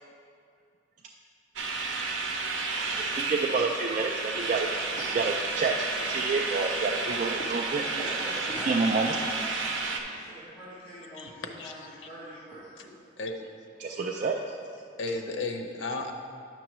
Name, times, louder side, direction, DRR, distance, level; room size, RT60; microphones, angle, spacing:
sound 1, 1.6-10.0, right 3 dB, 80° right, 0.7 m, -31 dB
voice 1, 2.9-4.7 5.2-7.8 8.7-9.2 13.8-14.4, right 4 dB, 40° right, 0 dB, 0.3 m, -28 dB
voice 2, 7.8-12.9, right 1 dB, 10° left, -12 dB, 1.5 m, -43 dB
voice 3, 11.1-11.9 12.8-12.9 13.2-13.5 15.0-16.1, left 3 dB, 85° left, 4 dB, 0.6 m, -34 dB
9.6 x 6.1 x 3.0 m, 2.3 s
head